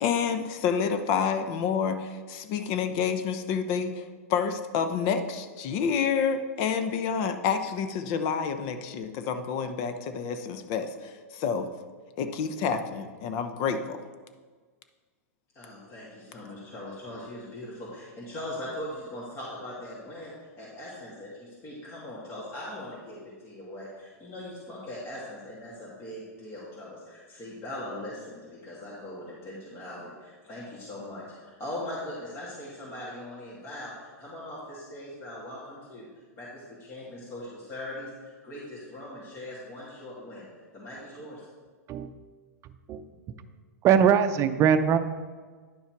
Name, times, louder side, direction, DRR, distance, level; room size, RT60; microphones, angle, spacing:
voice 1, 0.0-11.7 12.2-14.0, left 6 dB, 50° left, 9 dB, 0.8 m, -28 dB
voice 2, 15.6-36.1 36.4-38.1 38.4-40.5 40.7-41.5, left 1 dB, 30° left, -6 dB, 2.3 m, -40 dB
voice 3, 43.8-45.0, right 8 dB, 35° right, 11 dB, 0.6 m, -21 dB
10.0 x 5.6 x 4.6 m, 1.5 s
hypercardioid pair, 110°, 9 cm